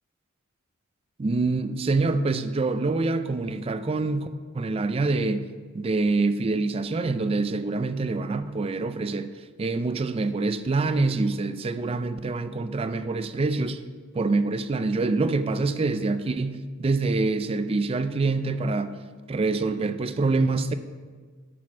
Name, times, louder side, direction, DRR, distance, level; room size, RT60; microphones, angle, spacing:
voice 1, 1.2-4.3 4.5-5.5 5.7-9.3 9.6-13.8 14.1-18.9 19.3-20.7, right 3 dB, 30° right, 11 dB, 0.3 m, -25 dB
10.0 x 4.3 x 6.0 m, 1.5 s
head